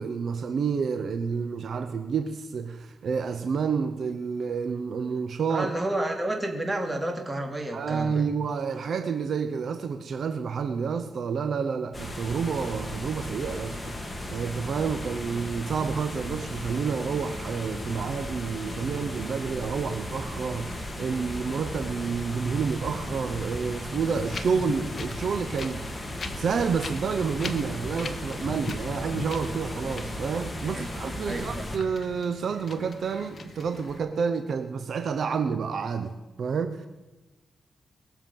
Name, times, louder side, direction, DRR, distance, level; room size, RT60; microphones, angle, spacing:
voice 1, 0.0-5.7 7.7-36.9, right 6 dB, 70° right, 0.8 m, -29 dB
voice 2, 5.5-8.2 30.7-30.9 31.3-31.7, right 1 dB, 20° right, 2.5 m, -30 dB
sound 1, 11.9-31.8, left 1 dB, 25° left, 2.1 m, -36 dB
Wind, 24.1-34.0, left 4 dB, 50° left, 1.0 m, -40 dB
21.0 x 7.3 x 5.4 m
cardioid pair, 75°, 0 cm